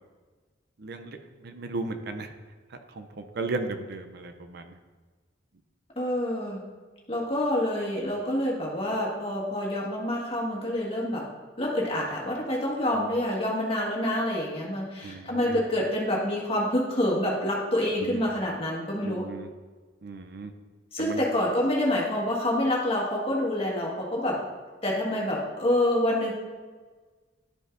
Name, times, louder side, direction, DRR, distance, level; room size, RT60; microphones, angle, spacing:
voice 1, 0.8-1.2 1.4-2.3 3.0-4.7 15.0-15.6 18.0-18.2 19.0-19.5 20.0-20.5 21.0-21.2, right 3 dB, 55° right, 7 dB, 0.5 m, -35 dB
voice 2, 5.9-6.7 7.1-11.2 11.6-19.2 20.9-24.4 24.8-26.3, left 1 dB, 30° left, -3 dB, 1.6 m, -27 dB
11.5 x 5.2 x 2.6 m, 1.4 s
head